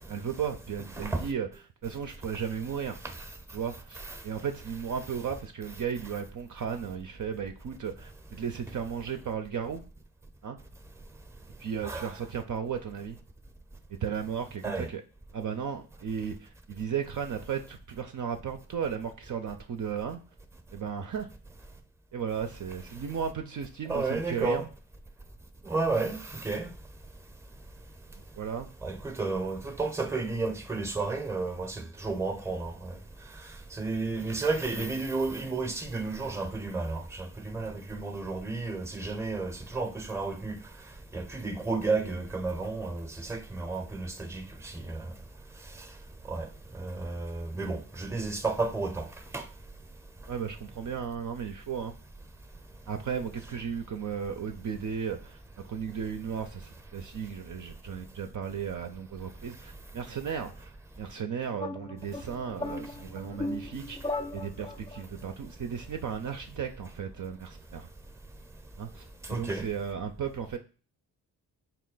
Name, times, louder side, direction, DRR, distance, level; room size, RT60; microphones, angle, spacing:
voice 1, 0.0-3.0 3.5-9.8 10.4-10.6 11.6-13.2 13.9-15.0 15.3-20.2 20.7-21.3 22.1-24.7 28.3-28.7 50.3-51.9 52.9-60.7 61.0-67.9 68.8-70.6, right 7 dB, 45° right, 0.5 m, -35 dB
voice 2, 1.0-1.3 3.0-3.1 11.8-12.1 14.6-14.9 23.9-24.6 25.6-26.7 28.8-33.0 33.7-40.6 41.1-45.1 46.3-46.5 46.7-49.1 49.3-49.5 69.3-69.7, right 3 dB, 5° right, 0.7 m, -32 dB
sound 1, 61.6-65.0, left 2 dB, 15° left, 0.3 m, -37 dB
4.2 x 2.2 x 3.9 m
cardioid pair, 60°, 43 cm